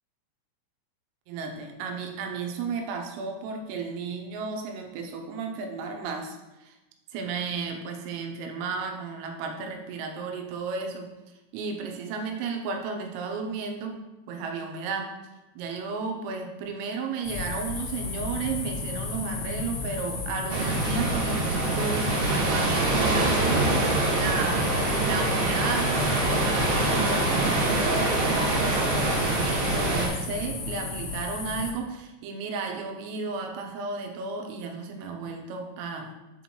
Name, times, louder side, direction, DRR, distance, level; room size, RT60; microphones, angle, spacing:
voice 1, 1.3-6.8 7.1-11.1 11.5-15.2 15.5-23.4 24.1-36.2, right 4 dB, 85° right, 3 dB, 3.3 m, -33 dB
sound 1, 17.2-31.7, left 4 dB, 75° left, 2.8 m, -34 dB
sound 2, 20.5-30.1, right 2 dB, 70° right, 3.1 m, -25 dB
7.4 x 3.0 x 4.2 m, 1.0 s
omnidirectional pair, 5.9 m